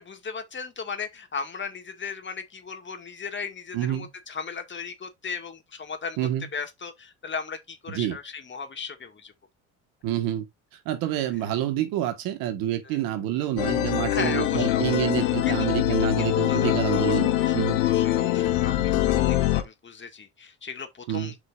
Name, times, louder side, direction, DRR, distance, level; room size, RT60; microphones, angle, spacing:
voice 1, 0.0-6.2 6.5-9.3 12.8-13.0 13.7-15.7 16.0-21.4, left 5 dB, 30° left, 2.0 m, -37 dB
voice 2, 3.7-4.1 6.2-6.5 7.9-8.2 10.0-10.5 10.9-17.8 21.1-21.3, right 12 dB, 70° right, 1.6 m, -28 dB
sound 1, 13.6-19.6, left 13 dB, 75° left, 1.3 m, -23 dB
8.1 x 5.3 x 2.5 m
hypercardioid pair, 75°, 36 cm